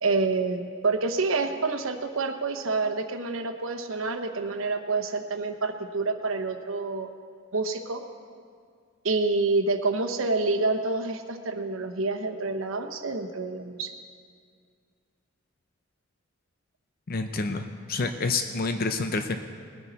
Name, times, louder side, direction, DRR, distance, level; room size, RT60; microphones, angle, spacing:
voice 1, 0.0-7.1 7.5-8.0 9.0-13.9, right 3 dB, 90° right, 7 dB, 1.0 m, -28 dB
voice 2, 17.1-19.4, left 3 dB, 50° left, 7 dB, 0.6 m, -28 dB
20.0 x 10.0 x 4.1 m, 2.1 s
head